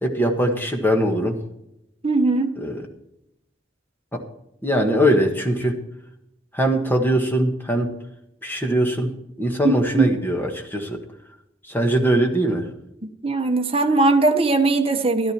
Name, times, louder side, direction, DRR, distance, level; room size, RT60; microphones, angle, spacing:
voice 1, 0.0-1.4 2.6-2.9 4.1-4.2 4.6-5.8 6.5-7.9 8.4-9.1 9.4-11.0 11.7-12.7, right 1 dB, 10° left, 3 dB, 1.6 m, -21 dB
voice 2, 2.0-2.6 9.6-10.1 13.2-15.3, right 3 dB, 30° right, 4 dB, 1.2 m, -19 dB
13.0 x 12.0 x 4.4 m, 0.84 s
head